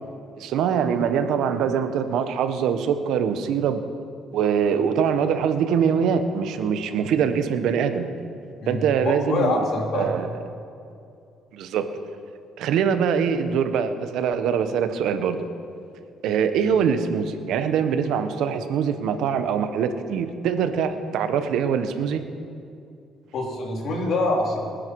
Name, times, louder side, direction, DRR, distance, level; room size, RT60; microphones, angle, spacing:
voice 1, 0.4-3.8 4.3-8.1 8.7-9.6 9.9-10.4 11.5-11.9 12.6-15.4 16.2-22.2, right 7 dB, 75° right, 9 dB, 1.2 m, -23 dB
voice 2, 9.3-10.1 23.3-24.6, left 2 dB, 60° left, -1 dB, 3.8 m, -24 dB
24.5 x 10.5 x 4.8 m, 2.5 s
cardioid pair, 110°, 0 cm